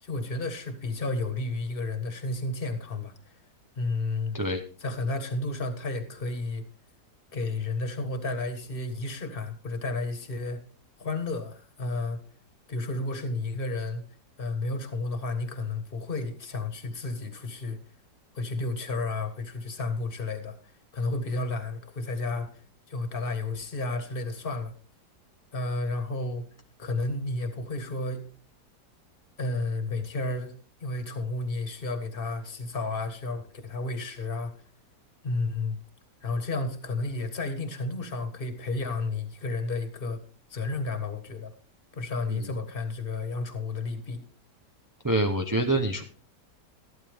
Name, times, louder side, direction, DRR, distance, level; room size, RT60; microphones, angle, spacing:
voice 1, 0.0-3.3 3.7-4.4 4.8-6.6 7.3-10.6 11.0-12.2 12.7-14.0 14.4-17.8 18.3-20.6 20.9-24.7 25.5-26.5 26.8-28.3 29.4-30.5 30.8-34.5 35.2-35.8 36.2-40.2 40.5-41.5 41.9-44.2, left 2 dB, 35° left, 8 dB, 1.7 m, -32 dB
voice 2, 45.0-46.0, right 2 dB, 20° right, 4 dB, 0.5 m, -26 dB
14.0 x 12.5 x 3.5 m, 0.39 s
omnidirectional pair, 1.8 m